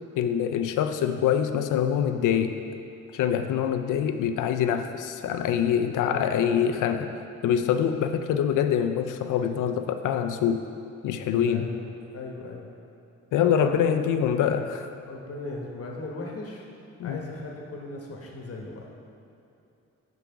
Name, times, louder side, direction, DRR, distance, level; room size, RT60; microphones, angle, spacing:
voice 1, 0.1-2.6 3.1-7.1 7.4-10.6 11.0-11.7 13.3-14.9 17.0-17.2, left 8 dB, 75° left, 8 dB, 0.5 m, -25 dB
voice 2, 6.0-6.6 11.5-11.9 12.1-12.7 13.3-14.0 15.1-16.6 17.0-18.9, left 2 dB, 45° left, -1 dB, 1.1 m, -37 dB
5.9 x 5.3 x 4.5 m, 2.7 s
cardioid pair, 75°, 31 cm